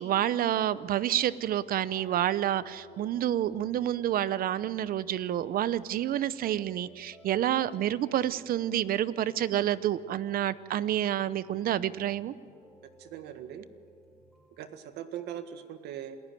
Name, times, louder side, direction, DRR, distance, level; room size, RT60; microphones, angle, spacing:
voice 1, 0.0-12.3, right 11 dB, 60° right, 16 dB, 0.8 m, -29 dB
sound 1, 0.6-14.6, right 1 dB, ahead, 5.5 m, -57 dB
voice 2, 13.0-13.7 14.6-16.2, right 10 dB, 80° right, 9 dB, 1.7 m, -40 dB
27.5 x 14.5 x 9.2 m, 2.1 s
cardioid pair, 110°, 17 cm